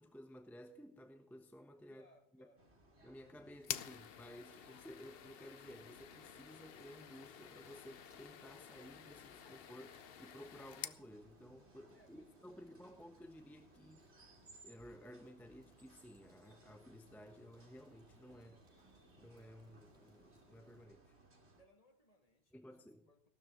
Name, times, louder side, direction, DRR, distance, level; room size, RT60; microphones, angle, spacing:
voice 1, 0.0-2.0 2.3-2.5 3.0-14.3 14.6-18.6 19.1-21.2 22.5-23.1, equal, ahead, 6 dB, 1.0 m, -56 dB
voice 2, 1.9-2.6 3.5-3.6 11.9-12.8 21.6-23.3, equal, 35° left, 4 dB, 1.9 m, -69 dB
sound 1, 2.6-21.6, right 2 dB, 85° right, 2.9 m, -66 dB
sound 2, 3.6-11.0, left 9 dB, 65° left, 0.8 m, -50 dB
sound 3, 4.6-20.9, right 1 dB, 55° right, 7.1 m, -71 dB
16.5 x 12.5 x 3.7 m, 0.69 s
omnidirectional pair, 1.1 m